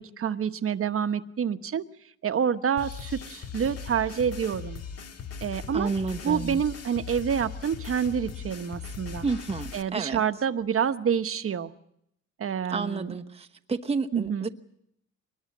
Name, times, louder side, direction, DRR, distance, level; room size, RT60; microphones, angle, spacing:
voice 1, 0.0-1.8 2.2-4.8 5.4-5.9 6.2-9.3 9.7-11.7 12.4-13.1 14.1-14.5, right 7 dB, 45° right, 11 dB, 1.2 m, -28 dB
sound 1, 2.8-9.8, left 6 dB, 55° left, 1.8 m, -39 dB
voice 2, 5.7-6.6 9.2-10.2 12.7-14.5, right 4 dB, 20° right, 4 dB, 1.0 m, -30 dB
24.0 x 20.5 x 7.4 m, 0.75 s
cardioid pair, 90°, 30 cm